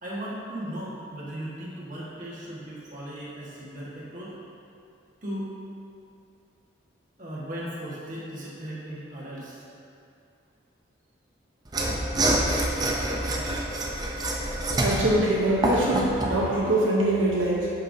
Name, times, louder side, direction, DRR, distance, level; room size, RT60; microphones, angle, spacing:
voice 1, 0.0-4.4 5.2-5.5 7.2-9.7, right 1 dB, 40° right, -7 dB, 1.6 m, -37 dB
Mechanisms / Sawing, 11.7-16.4, right 1 dB, 20° right, 0.5 m, -26 dB
voice 2, 14.7-17.7, right 1 dB, 90° right, -4 dB, 1.0 m, -23 dB
9.9 x 5.7 x 2.7 m, 2.6 s
head